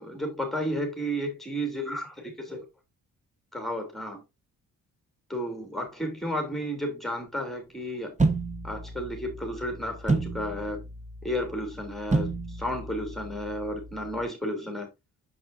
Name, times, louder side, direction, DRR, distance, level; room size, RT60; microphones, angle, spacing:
voice 1, 0.1-2.7 3.5-4.2 5.3-8.2 8.6-10.8 11.2-14.9, equal, ahead, 3.0 m, -32 dB
sound 1, 8.2-14.3, right 3 dB, 20° right, 1.4 m, -31 dB
7.6 x 7.4 x 2.6 m
cardioid pair, 70°, 34 cm